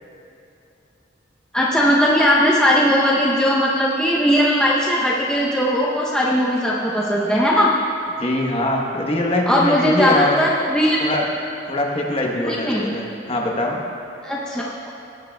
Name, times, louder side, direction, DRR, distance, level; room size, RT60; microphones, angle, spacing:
voice 1, 1.5-7.7 9.5-11.0 12.4-12.9 14.2-14.7, equal, 5° left, -5 dB, 0.6 m, -18 dB
voice 2, 8.2-10.5 11.0-11.3 11.7-13.8, left 1 dB, 30° left, 0 dB, 1.0 m, -22 dB
17.0 x 8.7 x 2.3 m, 2.8 s
head